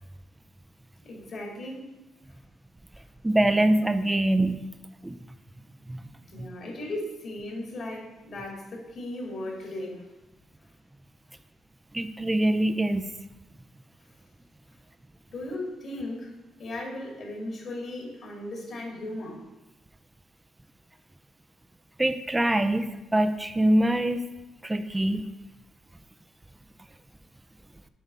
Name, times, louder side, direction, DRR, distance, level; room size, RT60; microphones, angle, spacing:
voice 1, 1.0-1.9 2.3-2.4 6.3-10.1 15.3-16.3 16.6-19.4, left 1 dB, 60° left, -1 dB, 1.9 m, -37 dB
voice 2, 3.2-4.6 5.0-5.2 5.9-6.0 6.4-6.5 11.9-13.1 22.0-24.2 24.6-25.2, right 1 dB, 15° right, 9 dB, 0.4 m, -24 dB
7.5 x 3.5 x 5.5 m, 1.0 s
cardioid pair, 90°, 0 cm